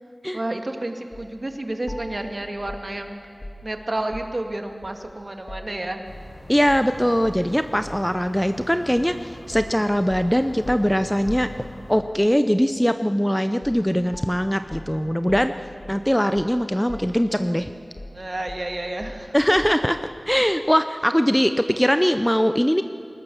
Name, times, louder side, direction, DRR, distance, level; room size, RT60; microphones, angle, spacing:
voice 1, 0.3-3.2 3.6-6.0 18.1-19.3, right 1 dB, 45° right, 5 dB, 2.0 m, -30 dB
sound 1, 1.1-1.3 1.9-4.5 4.8-6.3 6.7-6.9 7.2-8.1 9.0-9.2 9.5-12.1 13.6-13.9 14.1-16.6 16.9-17.5 18.0-19.9, left 1 dB, 50° left, 2.6 m, -40 dB
sound 2, 6.0-12.0, left 1 dB, 70° left, 4.5 m, -43 dB
voice 2, 6.5-15.5 15.9-17.7 19.3-20.0 20.3-22.8, equal, 5° left, 9 dB, 0.7 m, -21 dB
21.0 x 19.5 x 7.0 m, 2.3 s
wide cardioid pair, 50°, 0 cm